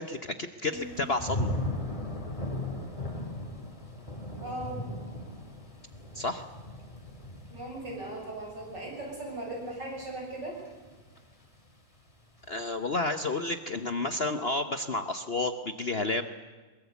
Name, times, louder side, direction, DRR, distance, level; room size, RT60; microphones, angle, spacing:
voice 1, 0.0-1.5 6.1-6.4 12.5-16.2, left 2 dB, 45° left, 8 dB, 1.0 m, -31 dB
Thunder / Rain, 0.7-11.7 12.1-12.6, left 1 dB, 20° left, 3.0 m, -38 dB
voice 2, 4.4-4.8 7.5-10.6, right 1 dB, 70° right, -1 dB, 7.8 m, -38 dB
22.5 x 22.0 x 8.3 m, 1.3 s
omnidirectional pair, 2.0 m